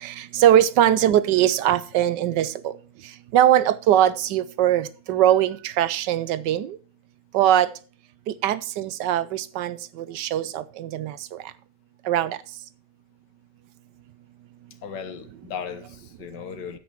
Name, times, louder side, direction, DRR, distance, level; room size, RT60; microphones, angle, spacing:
voice 1, 0.0-2.5 3.3-6.8 7.3-7.7 8.4-9.8 10.1-11.1 12.1-12.4, right 11 dB, 90° right, 1.3 m, -21 dB
voice 2, 14.8-16.8, left 7 dB, 85° left, 1.8 m, -36 dB
9.4 x 7.9 x 4.5 m
omnidirectional pair, 1.8 m